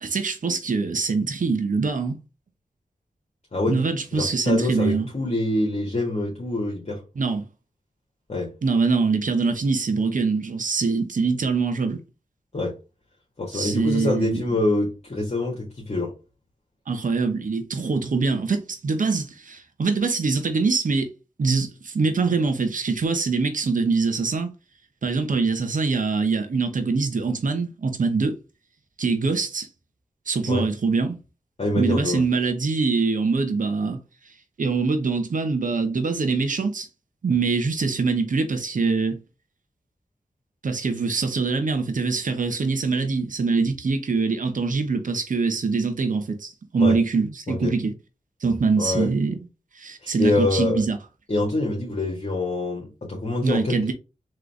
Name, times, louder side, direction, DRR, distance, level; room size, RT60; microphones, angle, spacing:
voice 1, 0.0-2.2 3.7-5.1 7.2-7.5 8.6-12.0 13.5-14.4 16.9-21.1 21.4-24.5 25.0-28.4 29.0-29.7 30.3-31.2 31.7-34.0 34.6-36.9 37.2-39.2 40.6-47.9 48.4-49.4 49.8-51.0 53.4-53.9, right 4 dB, 65° right, 1.0 m, -24 dB
voice 2, 4.1-7.0 8.3-8.5 12.5-12.7 13.4-16.1 30.5-30.6 31.6-32.2 46.8-47.0 47.5-47.7 48.8-49.1 50.0-50.8 51.3-53.9, left 2 dB, 45° left, 1.6 m, -25 dB
3.9 x 3.3 x 3.3 m
cardioid pair, 40°, 14 cm